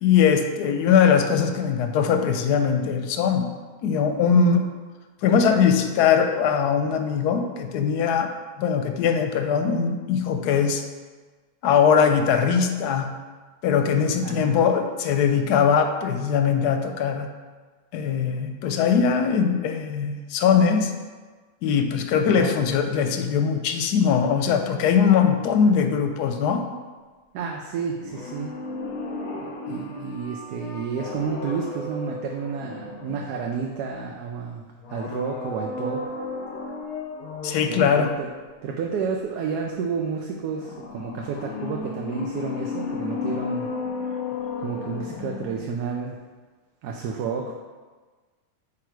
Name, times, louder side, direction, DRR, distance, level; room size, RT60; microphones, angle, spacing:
voice 1, 0.0-3.5 3.8-4.7 5.2-8.3 8.6-10.8 11.6-13.1 13.6-17.3 17.9-20.9 21.6-26.7 37.4-38.1, left 6 dB, 90° left, 6 dB, 1.1 m, -21 dB
voice 2, 14.2-14.6 22.3-22.5 27.3-28.5 29.3-36.0 37.7-38.3 38.6-43.7 44.6-46.2 46.8-47.5, right 5 dB, 85° right, 1 dB, 1.2 m, -30 dB
sound 1, 28.0-33.7 34.8-37.8 40.6-45.8 46.1-46.2, left 4 dB, 65° left, 1.3 m, -34 dB
8.5 x 3.1 x 4.6 m, 1.4 s
omnidirectional pair, 1.7 m